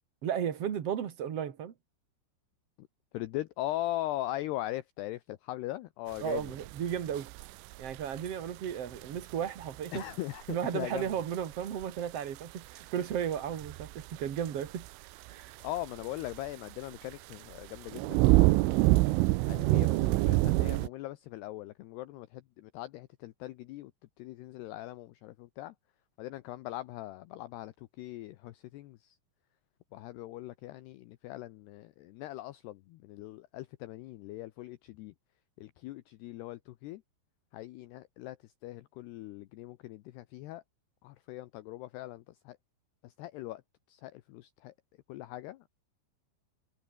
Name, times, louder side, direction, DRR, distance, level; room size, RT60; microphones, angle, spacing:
voice 1, 0.2-1.7 6.2-7.3 7.8-10.0 10.5-14.9 15.3-15.5, right 9 dB, 65° right, 1.5 m, -34 dB
voice 2, 3.1-6.5 9.9-11.1 15.6-18.6 19.1-23.9 24.2-25.7 26.2-29.2 29.9-35.1 35.6-37.0 37.5-40.6 41.0-42.6 43.0-43.6 43.9-44.7 45.1-45.7, left 16 dB, 80° left, 2.5 m, -40 dB
sound 1, 6.4-8.3 8.6-9.3 9.6-9.9 10.5-10.6 11.0-11.4 11.8-11.9 12.8-12.9 13.1-14.9 15.3-15.4 15.7-16.5 17.1-17.3 17.6-20.9, right 20 dB, 85° right, 3.2 m, -26 dB
omnidirectional pair, 5.6 m